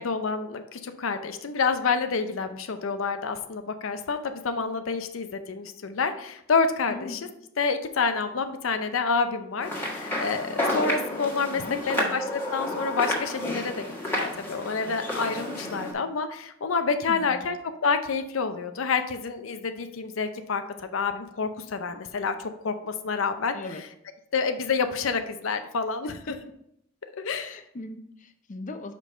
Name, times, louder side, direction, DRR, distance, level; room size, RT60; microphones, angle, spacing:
voice 1, 0.0-7.2 7.6-17.6 17.8-20.6 20.9-23.6 24.3-26.3 27.2-27.6, left 5 dB, 90° left, 8 dB, 0.6 m, -28 dB
voice 2, 6.9-7.2 11.5-12.2 17.1-17.5 23.5-23.8 27.3-28.9, left 2 dB, 40° left, 7 dB, 0.5 m, -39 dB
sound 1, 9.6-15.9, left 1 dB, 10° left, 1.4 m, -31 dB
5.2 x 5.2 x 4.3 m, 0.75 s
head